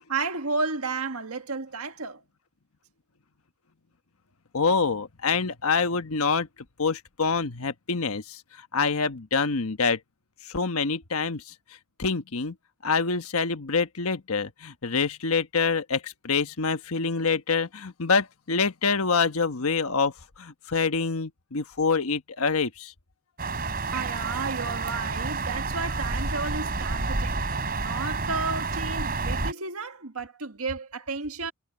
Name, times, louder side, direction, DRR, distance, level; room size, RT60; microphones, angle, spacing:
voice 1, 0.1-2.2 23.9-31.5, right 4 dB, 85° right, 1.8 m, -32 dB
voice 2, 4.5-6.5 6.8-10.0 10.4-11.5 12.0-12.5 12.8-22.9, left 4 dB, 80° left, 1.2 m, -26 dB
sound 1, 23.4-29.5, right 3 dB, 45° right, 4.2 m, -29 dB
head